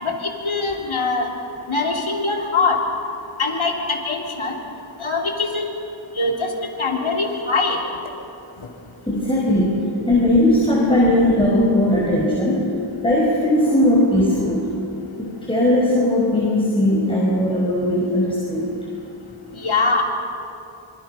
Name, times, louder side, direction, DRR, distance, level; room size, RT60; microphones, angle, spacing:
voice 1, 0.0-1.3 1.7-2.8 3.4-4.6 5.0-5.7 6.2-6.5 6.8-7.8 19.5-20.0, left 3 dB, 90° left, 0 dB, 3.5 m, -22 dB
voice 2, 9.1-12.7 13.0-14.7 15.2-18.7, left 1 dB, 10° left, -4 dB, 5.2 m, -18 dB
26.5 x 26.0 x 5.8 m, 2.8 s
wide cardioid pair, 65°, 47 cm